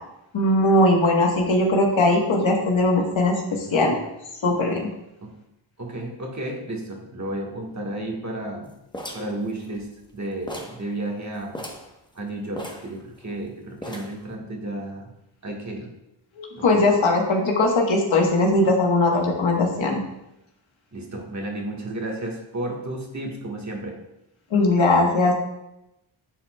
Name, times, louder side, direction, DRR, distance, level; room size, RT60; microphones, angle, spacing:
voice 1, 0.3-4.0 4.4-4.8 16.4-20.0 24.5-25.3, left 2 dB, 70° left, 1 dB, 1.3 m, -20 dB
voice 2, 5.8-8.7 9.1-11.6 12.1-15.1 15.4-15.9 16.5-17.0 20.9-24.0, right 1 dB, 35° right, 0 dB, 1.5 m, -32 dB
sound 1, 8.9-10.2 10.5-10.9 11.1-11.2 11.5-11.9 12.6-13.4 13.8-14.3, equal, 10° left, 0.9 m, -37 dB
10.5 x 4.2 x 2.3 m, 0.87 s
cardioid pair, 55°, 48 cm